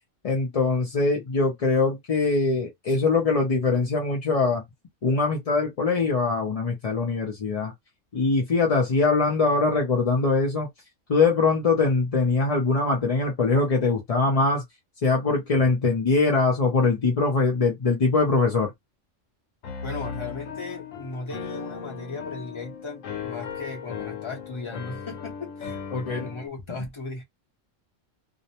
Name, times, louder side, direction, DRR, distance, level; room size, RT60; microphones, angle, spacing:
voice 1, 0.2-4.6 5.0-7.7 8.1-10.7 11.1-14.6 15.0-18.7 25.9-26.3, left 3 dB, 45° left, 0.5 m, -22 dB
Piano, 19.6-26.5, left 7 dB, 80° left, 1.0 m, -37 dB
voice 2, 19.8-27.2, left 3 dB, 25° left, 0.8 m, -36 dB
2.5 x 2.1 x 2.8 m
omnidirectional pair, 1.3 m